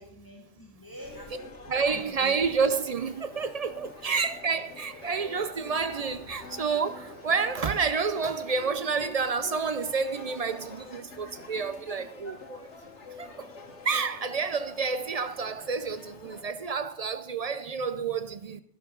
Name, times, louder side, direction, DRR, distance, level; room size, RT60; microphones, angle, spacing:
voice 1, 0.0-1.5 1.8-2.6 4.0-4.2, left 1 dB, 15° left, 2.1 m, -46 dB
sound 1, 1.0-16.4, left 3 dB, 70° left, 1.7 m, -46 dB
sound 2, 1.4-17.1, equal, 10° right, 4.8 m, -56 dB
voice 2, 1.7-12.6 13.2-13.5 13.9-18.6, right 5 dB, 50° right, 0.4 m, -29 dB
12.0 x 11.0 x 3.8 m
omnidirectional pair, 1.2 m